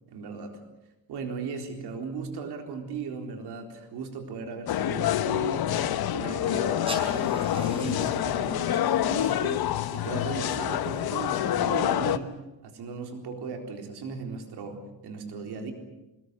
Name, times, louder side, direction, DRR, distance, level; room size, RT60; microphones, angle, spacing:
voice 1, 0.1-0.6 1.1-12.4 12.6-15.7, right 5 dB, 80° right, 4 dB, 4.1 m, -37 dB
sound 1, 4.7-12.2, left 11 dB, 70° left, 1.2 m, -27 dB
sound 2, 6.6-11.8, right 1 dB, 15° right, 5.8 m, -46 dB
25.0 x 21.0 x 8.2 m, 0.98 s
cardioid pair, 145°, 38 cm